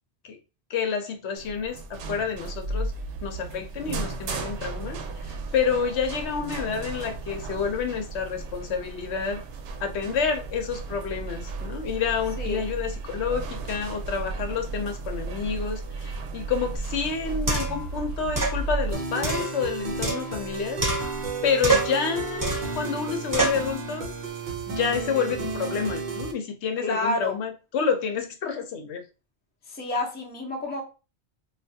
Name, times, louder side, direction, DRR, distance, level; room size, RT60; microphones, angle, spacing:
voice 1, 0.7-2.9 3.2-9.4 9.8-21.1 21.4-24.1 24.7-29.0, left 6 dB, 75° left, 0.9 m, -29 dB
sound 1, 1.4-18.9, right 3 dB, 80° right, 0.9 m, -34 dB
sound 2, 16.8-16.9 17.5-17.9 18.4-18.6 19.2-20.5 20.8-21.3 21.6-22.0 22.4-22.8 23.3-23.7, right 3 dB, 20° right, 0.8 m, -26 dB
sound 3, 18.9-26.3, right 4 dB, 55° right, 0.6 m, -33 dB
voice 2, 26.8-27.4 29.7-30.8, left 2 dB, 10° left, 0.5 m, -29 dB
3.2 x 2.3 x 2.6 m
omnidirectional pair, 1.2 m